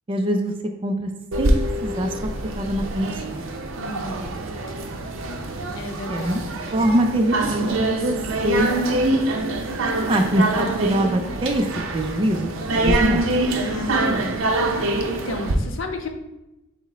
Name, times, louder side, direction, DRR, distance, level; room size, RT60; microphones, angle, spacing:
voice 1, 0.1-0.5 0.8-1.1 1.4-1.5 1.8-2.2 2.6-3.4 6.1-6.4 6.7-8.1 8.4-8.7 9.9-11.7 11.9-13.3, right 1 dB, 25° right, 4 dB, 0.3 m, -23 dB
sound 1, 1.3-15.5, right 2 dB, 75° right, 0.5 m, -25 dB
voice 2, 3.7-4.2 5.8-6.8 13.7-14.4 14.7-16.1, left 2 dB, 70° left, 5 dB, 0.6 m, -33 dB
6.0 x 2.1 x 4.1 m, 0.96 s
head